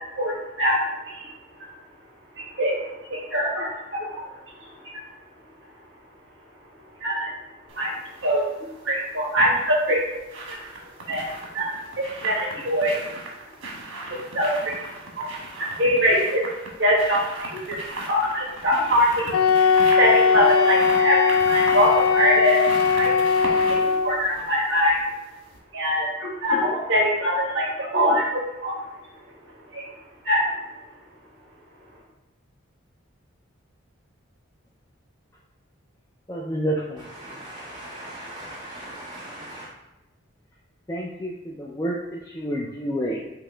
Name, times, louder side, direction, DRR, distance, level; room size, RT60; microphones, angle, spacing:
voice 1, 0.2-0.8 1.1-1.3 2.4-2.8 3.1-4.2 7.0-7.3 7.8-7.9 8.2-8.4 8.8-10.0 10.5-10.6 11.1-11.2 11.5-11.7 12.2-13.0 14.0-14.8 15.2-15.3 15.6-16.4 16.8-19.4 20.0-22.6 23.0-23.1 23.7-23.8 24.0-25.0 25.7-28.8 29.7-29.8 30.2-30.5, equal, 60° right, -3 dB, 1.5 m, -23 dB
sound 1, 7.7-8.4 9.7-25.2 25.5-25.6, right 2 dB, 85° right, 1.1 m, -37 dB
Wind instrument woodwind instrument, 19.3-24.2, left 6 dB, 90° left, 0.4 m, -19 dB
voice 2, 36.3-37.4 40.9-43.2, equal, 15° left, -3 dB, 0.3 m, -29 dB
voice 3, 37.0-39.7, right 1 dB, 20° right, -7 dB, 0.6 m, -39 dB
5.3 x 2.9 x 3.3 m, 0.98 s
head